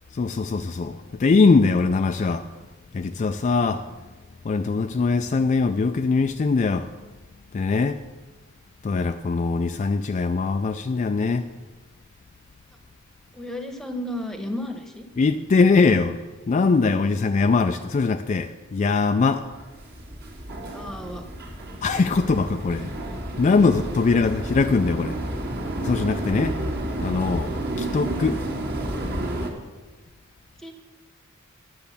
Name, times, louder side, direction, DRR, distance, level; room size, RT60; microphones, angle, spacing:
voice 1, 0.1-2.4 2.9-3.8 4.5-6.9 7.5-8.0 8.8-11.4 15.2-16.2 16.5-19.4 21.8-22.9 23.4-25.2 25.8-26.5 27.0-28.4, left 4 dB, 35° left, 0.3 m, -21 dB
voice 2, 13.3-15.1 20.7-21.3 30.6-30.7, left 1 dB, ahead, 1.0 m, -33 dB
sound 1, 19.5-29.5, right 1 dB, 50° right, 1.7 m, -31 dB
10.5 x 6.5 x 7.0 m
head